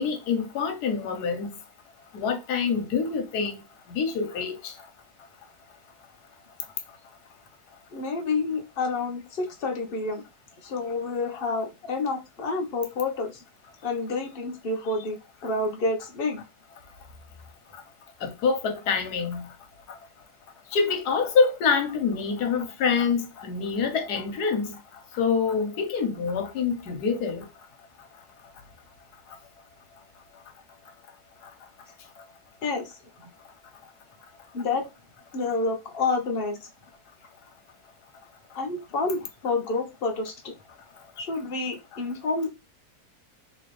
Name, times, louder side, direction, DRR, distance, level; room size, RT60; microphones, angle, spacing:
voice 1, 0.0-1.5 2.1-3.5 3.9-4.7 18.2-19.5 20.7-24.8 25.1-27.5, left 5 dB, 80° left, 1.4 m, -26 dB
voice 2, 7.9-10.2 10.6-13.4 13.8-16.4 32.6-33.0 34.5-34.9 35.3-36.6 38.5-40.6 41.2-42.5, left 3 dB, 45° left, 0.9 m, -29 dB
3.5 x 2.9 x 3.1 m
omnidirectional pair, 1.7 m